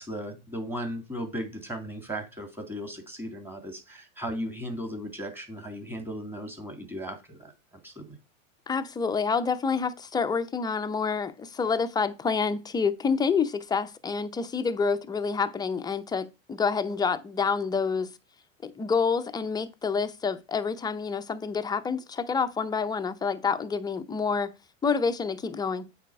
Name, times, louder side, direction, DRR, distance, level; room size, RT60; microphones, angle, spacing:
voice 1, 0.0-7.5 7.8-8.2, equal, 5° right, 2.0 m, -36 dB
voice 2, 8.7-18.1 18.6-24.5 24.8-25.9, left 5 dB, 10° left, 0.5 m, -28 dB
8.2 x 3.5 x 4.7 m
hypercardioid pair, 100°, 40 cm